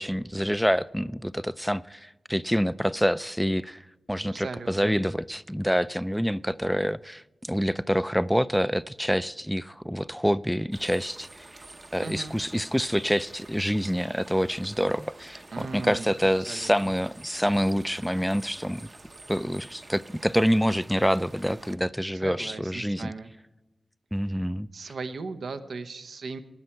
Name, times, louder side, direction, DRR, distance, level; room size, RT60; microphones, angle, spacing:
voice 1, 0.0-3.8 4.1-11.5 11.9-18.8 19.3-23.1 24.1-24.7, equal, ahead, 0.3 m, -26 dB
voice 2, 4.3-4.9 12.0-12.4 15.5-16.1 16.5-16.9 22.2-23.3 24.2-24.4 24.7-26.4, right 4 dB, 85° right, 0.8 m, -37 dB
sound 1, 10.7-21.8, right 2 dB, 35° right, 0.7 m, -49 dB
16.0 x 9.8 x 4.5 m
wide cardioid pair, 75°, 0 cm